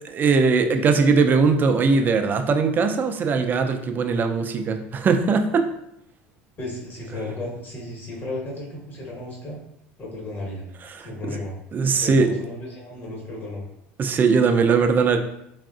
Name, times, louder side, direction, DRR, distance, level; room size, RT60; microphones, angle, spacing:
voice 1, 0.0-5.7 10.9-11.1 11.7-12.3 14.0-15.2, right 4 dB, 35° right, 6 dB, 0.3 m, -20 dB
voice 2, 6.6-9.6 10.0-10.6 11.0-11.5 12.0-13.6, left 2 dB, 35° left, -3 dB, 1.2 m, -34 dB
3.4 x 2.4 x 2.4 m, 0.79 s
supercardioid pair, 100°, 6 cm